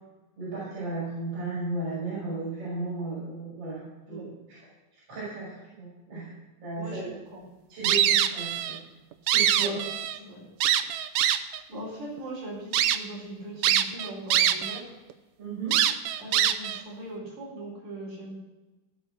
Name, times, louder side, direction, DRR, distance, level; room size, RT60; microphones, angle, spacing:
voice 1, 0.4-4.3 5.1-6.3 6.6-7.1 7.7-8.8 9.3-9.7 15.4-15.8, right 2 dB, 45° right, -9 dB, 6.8 m, -34 dB
sound 1, 7.8-8.8 9.1-10.2 10.6-11.6 12.2-12.3 12.7-13.0 13.6-14.8 15.1-15.2 15.7-16.8, right 11 dB, 75° right, 1.9 m, -23 dB
voice 2, 11.7-15.0 16.2-18.4, right 1 dB, 60° right, -6 dB, 5.6 m, -40 dB
17.0 x 6.5 x 6.3 m, 1.1 s
omnidirectional pair, 3.6 m